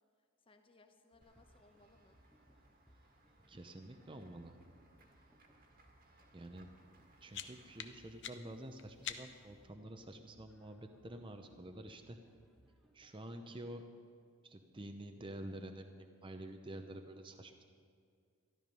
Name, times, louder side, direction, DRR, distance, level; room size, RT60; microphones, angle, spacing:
voice 1, 0.2-2.2, left 2 dB, 25° left, 5 dB, 1.0 m, -67 dB
sound 1, 1.1-13.2, equal, ahead, 1.0 m, -69 dB
Run / Walk footsteps / Bell, 1.2-7.9, right 2 dB, 40° right, 1.7 m, -68 dB
voice 2, 3.5-4.6 6.3-6.7 7.2-12.2 12.9-13.8 14.4-17.6, right 1 dB, 20° right, 6 dB, 0.7 m, -49 dB
sound 2, 6.9-9.6, left 9 dB, 55° left, 0.7 m, -48 dB
13.5 x 12.5 x 5.4 m, 2.2 s
head